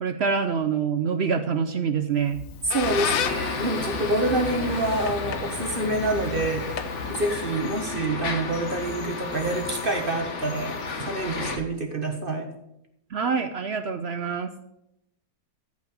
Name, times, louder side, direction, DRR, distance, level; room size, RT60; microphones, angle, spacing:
voice 1, 0.0-2.4 13.1-14.5, right 6 dB, 60° right, 9 dB, 0.7 m, -26 dB
Squeak, 2.2-7.7, left 9 dB, 65° left, 1.1 m, -34 dB
voice 2, 2.6-6.7 7.1-12.5, right 2 dB, 40° right, 5 dB, 1.2 m, -27 dB
sound 1, 2.8-11.6, left 4 dB, 50° left, 1.5 m, -32 dB
14.5 x 5.2 x 6.4 m, 0.82 s
omnidirectional pair, 1.7 m